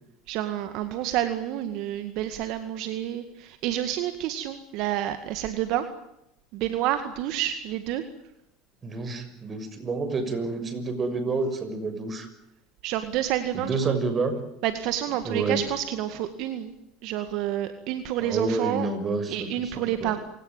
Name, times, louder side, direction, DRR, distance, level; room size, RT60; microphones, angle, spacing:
voice 1, 0.3-5.8 6.5-8.0 12.8-13.9 14.6-16.7 17.0-18.9 19.3-20.2, right 12 dB, 65° right, 9 dB, 2.1 m, -29 dB
voice 2, 8.8-12.3 13.5-14.3 15.2-15.6 18.2-20.1, right 3 dB, 30° right, 10 dB, 6.4 m, -29 dB
27.5 x 18.0 x 9.0 m, 0.81 s
supercardioid pair, 100°, 0 cm